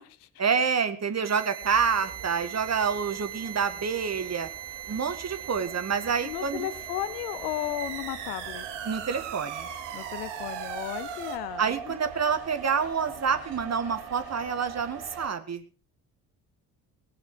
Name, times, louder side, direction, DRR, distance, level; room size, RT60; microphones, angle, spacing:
voice 1, 0.4-4.5 4.9-6.7 8.8-9.7 11.6-15.6, right 6 dB, 35° right, 9 dB, 1.9 m, -28 dB
sound 1, 1.2-11.4, right 10 dB, 70° right, 1.9 m, -39 dB
sound 2, 1.6-15.3, right 6 dB, 50° right, 2.9 m, -43 dB
voice 2, 6.2-8.7 9.9-11.9, left 14 dB, 75° left, 16 dB, 1.1 m, -35 dB
21.0 x 7.7 x 4.7 m, 0.38 s
figure-of-eight pair, 45°, 45 cm